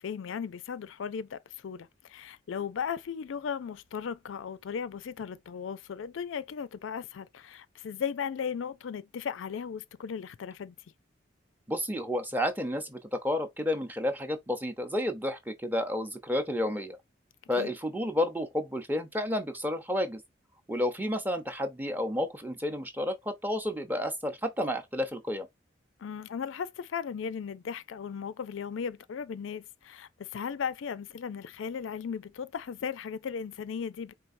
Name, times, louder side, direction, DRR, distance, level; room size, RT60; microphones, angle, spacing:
voice 1, 0.0-10.7 17.6-17.7 26.0-34.1, left 7 dB, 85° left, 0.4 m, -36 dB
voice 2, 11.7-17.0 17.5-20.2 20.7-25.5, left 1 dB, 10° right, 0.7 m, -31 dB
4.6 x 3.3 x 2.5 m
head